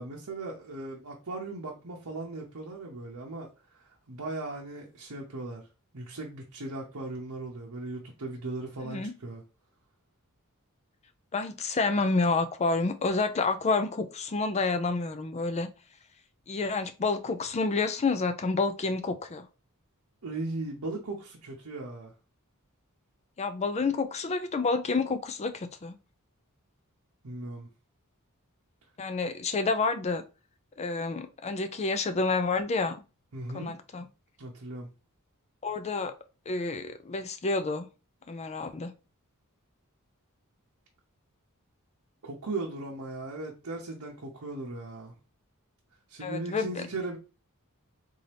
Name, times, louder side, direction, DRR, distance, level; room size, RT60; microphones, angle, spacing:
voice 1, 0.0-3.5 3.8-5.6 5.9-9.4 20.2-22.1 27.2-27.7 33.3-33.7 34.4-34.9 42.2-45.1 46.1-47.2, right 2 dB, 70° right, 0.8 m, -38 dB
voice 2, 11.3-15.7 16.5-19.5 23.4-26.0 29.0-30.2 30.8-33.0 33.5-34.1 35.6-36.1 36.5-37.9 38.3-38.9 46.2-46.8, left 3 dB, 30° left, 0.4 m, -29 dB
3.8 x 2.8 x 3.3 m
head